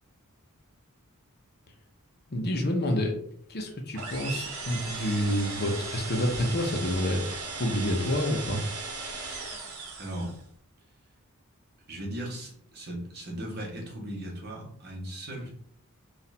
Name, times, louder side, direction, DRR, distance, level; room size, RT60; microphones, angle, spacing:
voice 1, 2.3-3.1 3.5-8.6, left 1 dB, 45° left, 3 dB, 0.8 m, -28 dB
sound 1, 3.9-10.5, right 3 dB, 70° right, 1.0 m, -37 dB
voice 2, 10.0-10.3 11.9-15.5, right 1 dB, 50° right, -3 dB, 1.5 m, -37 dB
4.1 x 2.5 x 4.1 m, 0.63 s
head